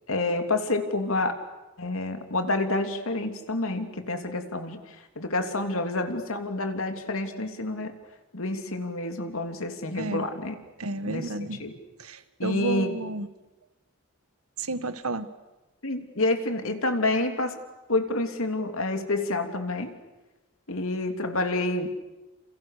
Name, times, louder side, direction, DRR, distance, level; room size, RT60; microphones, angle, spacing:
voice 1, 0.1-1.3 1.8-7.9 8.3-10.5 11.0-11.3 11.6-11.7 12.4-13.0 15.8-17.6 17.9-20.0 20.7-21.9, left 2 dB, 75° left, 6 dB, 3.1 m, -28 dB
voice 2, 10.0-10.3 10.8-11.6 12.0-13.3 14.6-15.3, right 2 dB, 85° right, 11 dB, 1.6 m, -31 dB
29.5 x 29.0 x 6.8 m, 1.1 s
head